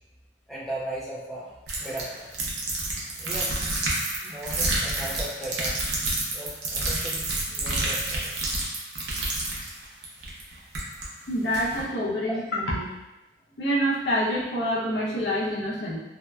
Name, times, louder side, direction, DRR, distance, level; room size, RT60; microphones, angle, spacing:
voice 1, 0.5-3.6 4.2-5.8 6.3-8.5 12.2-12.4, right 1 dB, ahead, -7 dB, 0.3 m, -37 dB
sound 1, 1.7-11.1 11.5-11.8, right 2 dB, 80° right, 0.6 m, -29 dB
voice 2, 11.3-12.9 13.6-16.0, equal, 80° left, -6 dB, 0.7 m, -26 dB
2.7 x 2.1 x 2.2 m, 1.0 s
head